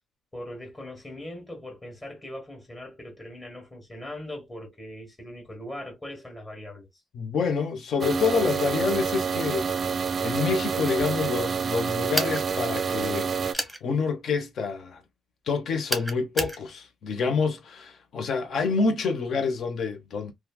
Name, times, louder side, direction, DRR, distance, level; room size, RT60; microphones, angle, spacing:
voice 1, 0.3-6.9, left 1 dB, 25° left, 1.4 m, -40 dB
voice 2, 7.1-9.7 10.2-15.0 15.5-20.3, left 5 dB, 60° left, 0.9 m, -27 dB
sound 1, 8.0-13.5, right 6 dB, 45° right, 0.4 m, -28 dB
sound 2, 12.1-12.4 13.5-13.8 15.9-16.6, right 1 dB, ahead, 0.9 m, -29 dB
3.1 x 2.4 x 2.3 m
cardioid pair, 90°, 0 cm